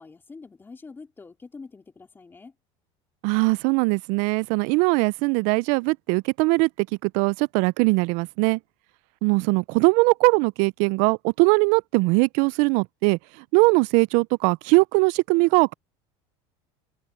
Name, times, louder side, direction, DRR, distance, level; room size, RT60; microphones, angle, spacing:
voice 1, 0.0-2.5, left 4 dB, 15° left, 2.9 m, -45 dB
voice 2, 3.2-8.6 9.2-13.2 13.5-15.7, right 27 dB, 65° right, 0.4 m, -21 dB
open air
supercardioid pair, 125°, 14 cm